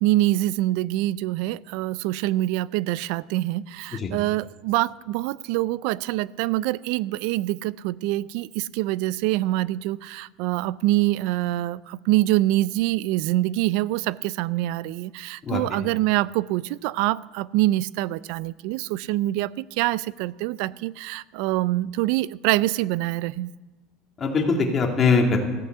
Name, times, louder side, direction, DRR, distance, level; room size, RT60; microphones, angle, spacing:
voice 1, 0.0-23.5, right 16 dB, 70° right, 21 dB, 0.4 m, -25 dB
voice 2, 15.4-15.8 24.2-25.4, left 4 dB, 25° left, 1 dB, 2.5 m, -22 dB
15.0 x 8.3 x 8.1 m, 1.3 s
supercardioid pair, 140°, 0 cm